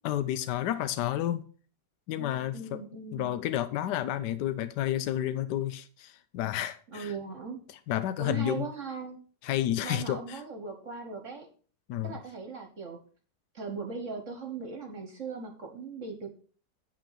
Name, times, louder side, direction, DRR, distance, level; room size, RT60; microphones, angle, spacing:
voice 1, 0.0-1.4 2.1-2.8 3.1-7.1 7.9-8.7 9.4-10.4 11.9-12.2, left 12 dB, 80° left, 12 dB, 1.2 m, -31 dB
voice 2, 2.2-3.3 6.9-7.6 8.2-9.2 9.8-11.5 12.0-13.0 13.5-16.3, right 5 dB, 50° right, 5 dB, 1.5 m, -39 dB
9.1 x 5.6 x 5.7 m, 0.41 s
omnidirectional pair, 1.8 m